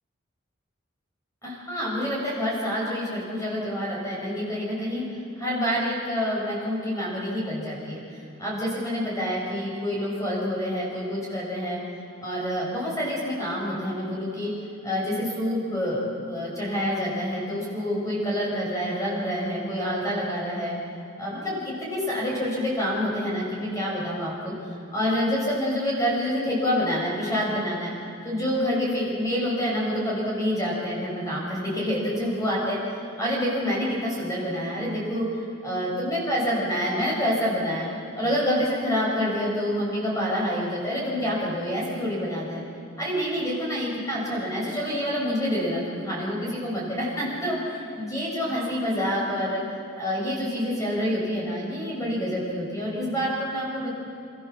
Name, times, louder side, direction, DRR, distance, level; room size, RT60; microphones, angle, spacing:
voice 1, 1.4-5.0 5.4-8.0 8.4-11.8 12.2-14.5 14.8-20.7 21.2-24.5 24.9-27.9 28.2-35.3 35.6-37.9 38.2-42.6 43.0-49.6 50.0-53.9, equal, 15° left, -5 dB, 7.1 m, -27 dB
29.5 x 14.0 x 7.3 m, 2.8 s
head